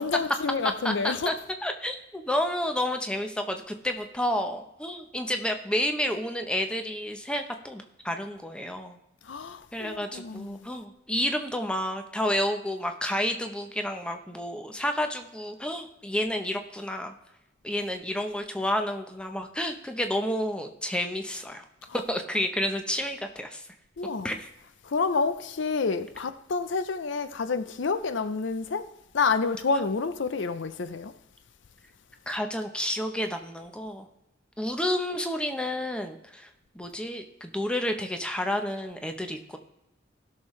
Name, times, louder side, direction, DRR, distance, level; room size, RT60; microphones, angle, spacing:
voice 1, 0.0-1.3 9.3-10.6 24.0-24.3 24.8-28.9 29.1-31.1, left 4 dB, 70° left, 0.5 m, -29 dB
voice 2, 0.8-1.3 1.6-9.0 9.7-17.1 17.6-21.6 21.9-23.6 24.2-24.5 32.3-34.1 34.6-36.5 36.7-39.6, left 1 dB, 5° left, 0.7 m, -30 dB
16.5 x 6.5 x 3.2 m
head